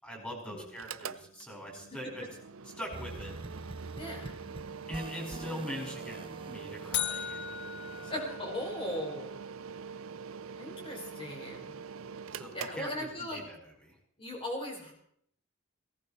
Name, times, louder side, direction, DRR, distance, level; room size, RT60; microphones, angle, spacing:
voice 1, 0.0-2.3 2.8-3.6 4.9-6.2 6.5-7.4 8.0-8.2 12.3-13.6 13.8-14.0, equal, 5° left, 0 dB, 5.6 m, -42 dB
Mechanical fan, 0.7-13.5, right 6 dB, 70° right, 0.6 m, -44 dB
sound 1, 2.9-8.2, right 2 dB, 25° right, 0.8 m, -46 dB
voice 2, 3.9-4.3 8.1-9.3 10.5-11.8 12.5-13.4 14.2-14.9, left 1 dB, 25° left, 0 dB, 5.0 m, -38 dB
sound 2, 6.9-9.1, left 10 dB, 55° left, 0.9 m, -37 dB
18.0 x 17.5 x 4.4 m, 0.69 s
head